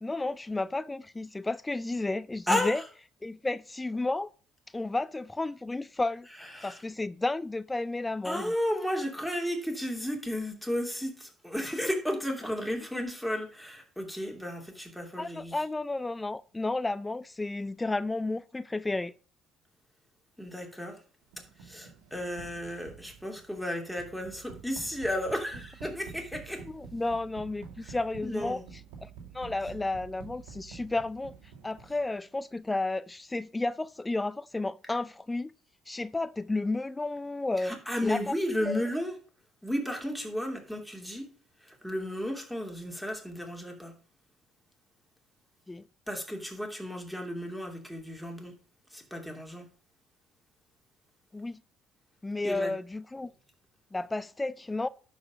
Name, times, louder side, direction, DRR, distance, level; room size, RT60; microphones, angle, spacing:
voice 1, 0.0-2.8 3.2-4.3 4.7-6.3 6.6-8.4 15.2-19.1 26.7-28.6 29.0-29.1 29.3-31.3 31.6-35.5 35.9-37.7 38.0-38.3 38.6-38.8 45.7-45.8 51.3-51.6 52.2-53.3 53.9-54.9, left 2 dB, 15° left, 0.4 m, -32 dB
voice 2, 2.5-2.8 6.4-6.8 8.2-15.6 20.4-21.0 21.4-26.6 27.8-28.0 28.2-28.6 37.6-39.2 39.6-41.3 41.6-43.9 46.1-48.5 48.9-49.7 52.4-52.8, left 1 dB, ahead, 3.0 m, -33 dB
sound 1, 21.3-32.2, right 6 dB, 80° right, 1.9 m, -49 dB
12.0 x 4.9 x 5.1 m
hypercardioid pair, 60°, 0 cm